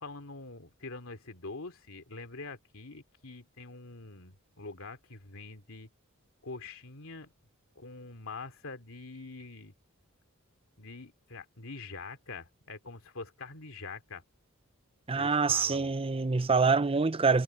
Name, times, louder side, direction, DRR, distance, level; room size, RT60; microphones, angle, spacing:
voice 1, 0.0-5.9 6.4-7.3 7.7-9.7 10.8-14.2 15.1-15.9, left 3 dB, 65° left, 2.8 m, -44 dB
voice 2, 15.1-17.4, right 4 dB, 25° right, 0.6 m, -26 dB
head